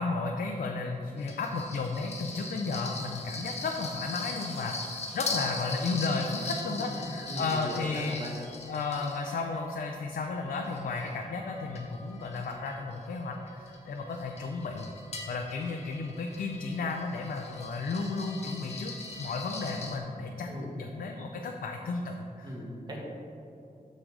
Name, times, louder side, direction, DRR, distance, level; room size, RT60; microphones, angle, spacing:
voice 1, 0.0-8.3 8.7-14.9 15.3-18.9 19.2-22.6, left 3 dB, 70° left, 2 dB, 0.6 m, -33 dB
sound 1, 1.2-9.7 10.2-20.0, left 3 dB, 45° left, 1.1 m, -41 dB
voice 2, 7.0-8.3 20.5-20.8 22.4-23.0, equal, 30° right, -3 dB, 1.7 m, -38 dB
6.6 x 6.2 x 4.8 m, 2.7 s
wide cardioid pair, 125°, 16 cm